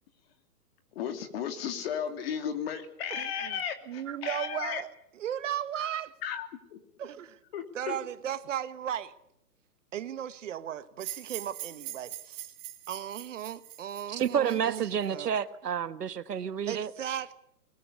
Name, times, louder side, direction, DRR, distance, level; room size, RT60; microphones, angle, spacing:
voice 1, 0.9-4.8 6.2-6.8 7.5-8.0, left 8 dB, 40° left, 2.9 m, -35 dB
voice 2, 3.1-3.6 3.9-6.1 7.0-7.4 7.7-9.1 9.9-12.5 12.9-15.3 16.7-17.3, right 10 dB, 50° right, 1.4 m, -36 dB
sound 1, 11.0-15.1, right 14 dB, 30° right, 2.6 m, -42 dB
voice 3, 14.1-16.9, right 8 dB, 80° right, 1.7 m, -30 dB
22.5 x 21.0 x 8.3 m
hypercardioid pair, 155°, 47 cm